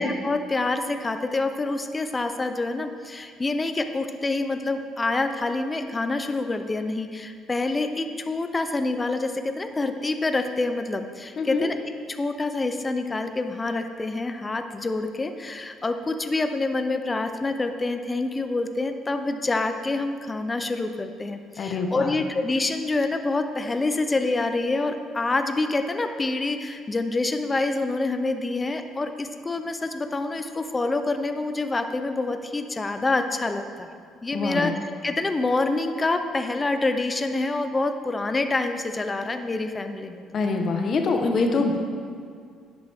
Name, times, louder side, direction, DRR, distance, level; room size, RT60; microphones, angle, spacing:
voice 1, 0.0-11.8 12.1-33.9 34.2-34.7 35.0-40.2, left 2 dB, 15° left, 7 dB, 0.4 m, -27 dB
voice 2, 11.4-11.7 21.6-22.1 34.3-34.7 40.3-41.8, left 3 dB, 35° left, 4 dB, 0.8 m, -24 dB
10.5 x 8.1 x 3.4 m, 2.1 s
cardioid pair, 175°, 0 cm